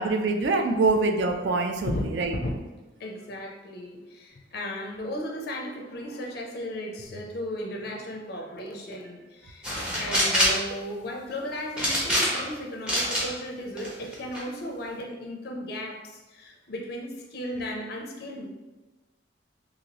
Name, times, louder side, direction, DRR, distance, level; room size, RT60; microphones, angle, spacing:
voice 1, 0.0-2.3, right 3 dB, 60° right, 5 dB, 0.3 m, -24 dB
voice 2, 3.0-18.5, left 1 dB, 50° left, 1 dB, 0.4 m, -35 dB
sound 1, 9.6-10.6 11.8-12.5 12.9-13.3 13.8-14.4, equal, 5° right, 0.6 m, -24 dB
2.9 x 2.6 x 2.9 m, 1.1 s
head